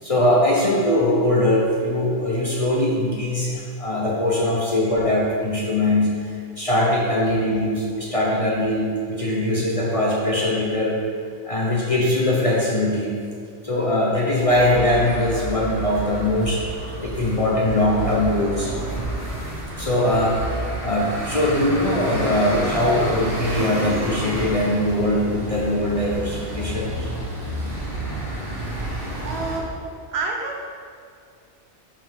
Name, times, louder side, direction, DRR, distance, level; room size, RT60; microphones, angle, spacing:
voice 1, 0.0-11.0 11.4-13.1 13.6-16.6 17.0-18.7 19.8-27.1, left 1 dB, 40° left, -4 dB, 0.6 m, -21 dB
sound 1, 14.5-29.6, right 1 dB, 45° right, 1.8 m, -30 dB
voice 2, 29.2-30.6, right 3 dB, 65° right, 1 dB, 0.9 m, -29 dB
5.7 x 4.8 x 3.4 m, 2.3 s
omnidirectional pair, 1.2 m